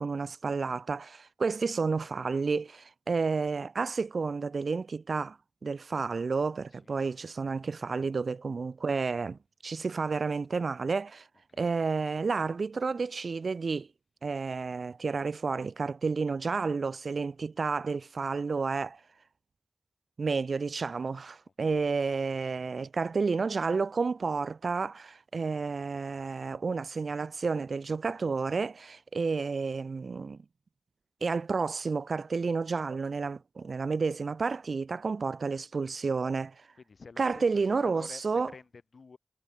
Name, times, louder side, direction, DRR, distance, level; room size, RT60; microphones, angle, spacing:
voice 1, 0.0-5.4 5.6-11.3 11.6-13.9 14.2-19.0 20.2-30.4 31.2-36.5 37.2-38.5, right 4 dB, 80° right, 0.4 m, -31 dB
voice 2, 36.7-39.2, left 4 dB, 75° left, 2.5 m, -50 dB
cardioid pair, 50°, 0 cm